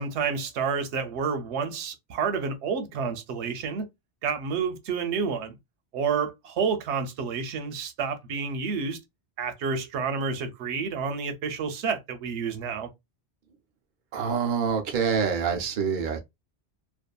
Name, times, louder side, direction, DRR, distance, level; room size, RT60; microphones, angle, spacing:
voice 1, 0.0-3.9 4.2-5.5 5.9-9.0 9.4-12.9, right 5 dB, 90° right, 0.9 m, -29 dB
voice 2, 14.1-16.2, right 6 dB, 55° right, 0.7 m, -26 dB
2.6 x 2.4 x 2.2 m
omnidirectional pair, 1.1 m